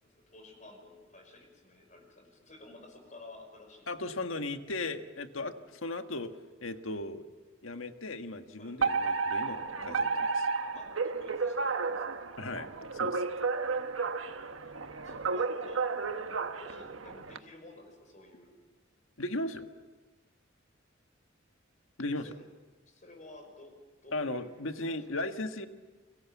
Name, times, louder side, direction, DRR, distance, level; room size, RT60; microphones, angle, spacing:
voice 1, 0.0-4.2 8.6-8.8 10.7-12.0 13.7-14.2 15.0-15.9 16.5-18.6 22.1-22.4 22.9-23.8 24.0-25.0, left 2 dB, 40° left, 4 dB, 5.4 m, -53 dB
voice 2, 3.9-6.3 6.6-7.2 7.6-10.5 12.4-13.2 19.2-19.7 22.0-22.3 24.1-25.7, left 2 dB, 85° left, 7 dB, 1.6 m, -37 dB
Alarm, 8.8-17.4, right 4 dB, 85° right, 1.3 m, -32 dB
30.0 x 23.0 x 7.2 m, 1.3 s
head